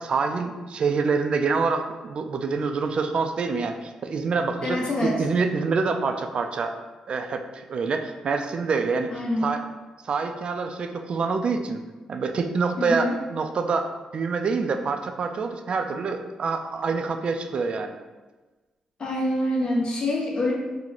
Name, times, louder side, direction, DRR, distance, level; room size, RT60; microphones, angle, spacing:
voice 1, 0.0-6.8 7.1-9.6 10.0-11.8 12.1-18.0, right 4 dB, 55° right, 6 dB, 0.3 m, -26 dB
voice 2, 4.6-5.2 9.1-9.5 12.8-13.2 19.0-20.5, left 1 dB, 45° left, -3 dB, 0.9 m, -25 dB
3.0 x 2.1 x 3.8 m, 1.2 s
cardioid pair, 70°, 2 cm